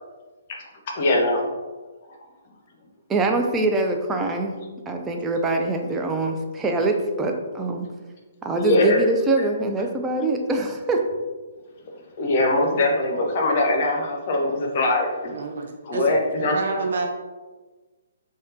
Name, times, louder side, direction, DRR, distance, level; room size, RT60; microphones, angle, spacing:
voice 1, 0.9-1.4 8.6-9.0 12.2-15.3 15.8-16.6 16.9-17.0, left 2 dB, 45° left, 1 dB, 0.6 m, -22 dB
voice 2, 3.1-4.6 4.9-7.9 8.4-11.0, right 2 dB, 15° right, 3 dB, 0.4 m, -24 dB
voice 3, 15.3-16.2 16.5-17.1, right 3 dB, 65° right, 2 dB, 0.5 m, -28 dB
3.4 x 2.3 x 2.7 m, 1.3 s
figure-of-eight pair, 135°, 0 cm